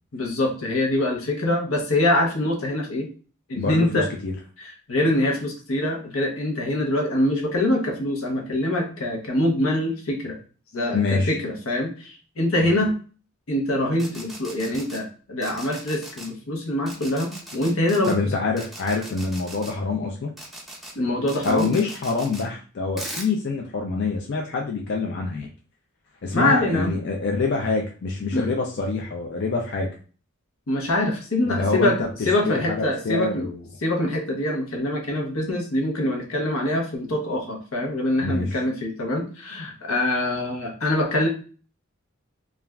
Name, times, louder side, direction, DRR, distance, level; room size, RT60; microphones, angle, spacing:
voice 1, 0.1-3.1 3.5-4.1 4.6-10.4 10.7-12.9 13.5-18.1 21.0-21.7 26.3-26.9 28.3-28.5 30.7-32.0 32.2-33.5 33.8-41.3, left 1 dB, 85° left, 2 dB, 0.8 m, -24 dB
voice 2, 3.6-4.3 10.9-11.3 18.1-20.3 21.4-25.5 26.2-29.9 31.5-32.1 32.4-33.6 38.2-38.6, left 3 dB, 55° left, 0 dB, 0.4 m, -26 dB
sound 1, 13.9-15.0 15.4-16.3 16.9-18.1 18.6-19.7 20.4-20.9 21.3-22.4 23.0-23.3, right 1 dB, ahead, 0.5 m, -39 dB
3.2 x 2.4 x 2.2 m, 0.38 s
head